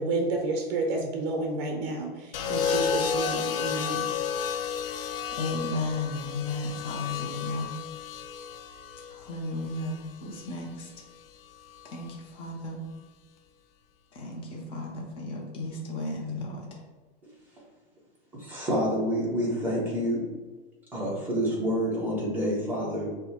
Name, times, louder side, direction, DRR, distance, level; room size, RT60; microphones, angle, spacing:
voice 1, 0.0-4.1, right 2 dB, 45° right, 3 dB, 0.7 m, -30 dB
sound 1, 2.3-10.5 11.7-12.1, left 7 dB, 70° left, 0.5 m, -32 dB
voice 2, 5.3-7.8 9.1-10.9 11.9-12.8 14.1-16.8, left 2 dB, 20° left, -1 dB, 0.6 m, -34 dB
voice 3, 18.4-20.3 20.9-23.1, equal, 5° right, -6 dB, 0.9 m, -28 dB
6.0 x 2.2 x 2.9 m, 1.2 s
supercardioid pair, 155°, 29 cm